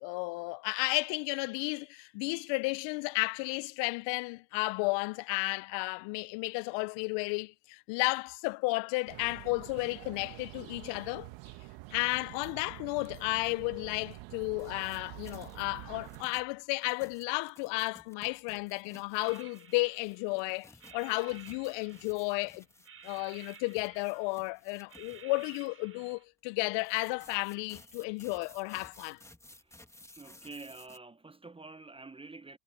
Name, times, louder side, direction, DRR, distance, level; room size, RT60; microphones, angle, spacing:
voice 1, 0.0-11.3 11.9-22.6 23.0-29.2, left 27 dB, 70° left, 0.7 m, -33 dB
sound 1, 9.1-16.2, right 22 dB, 70° right, 1.5 m, -47 dB
sound 2, 14.6-15.6 16.0-25.7 26.8-31.0, left 1 dB, 5° left, 1.7 m, -57 dB
sound 3, 19.2-20.4 20.8-22.5 22.8-24.5 24.9-26.2, right 7 dB, 30° right, 5.2 m, -54 dB
voice 2, 30.2-32.6, right 3 dB, 10° right, 0.7 m, -48 dB
hypercardioid pair, 75°, 46 cm